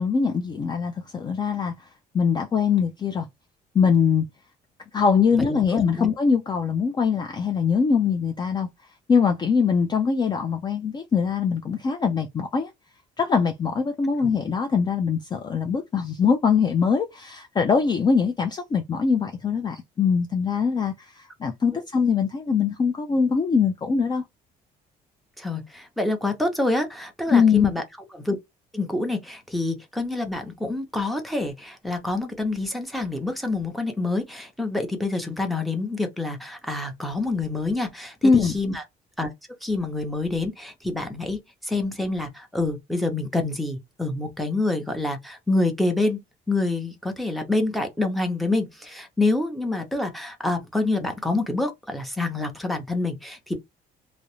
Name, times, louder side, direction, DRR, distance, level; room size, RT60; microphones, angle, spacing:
voice 1, 0.0-1.7 2.1-3.3 3.7-4.2 4.9-8.7 9.1-12.7 13.2-24.2 27.3-27.7 38.2-38.5, left 6 dB, 25° left, 0.4 m, -22 dB
voice 2, 25.4-27.8 28.1-28.4 28.7-38.8 39.2-39.3 39.6-46.2 46.5-53.6, left 2 dB, ahead, 0.7 m, -27 dB
2.4 x 2.0 x 2.9 m
cardioid pair, 110°, 17 cm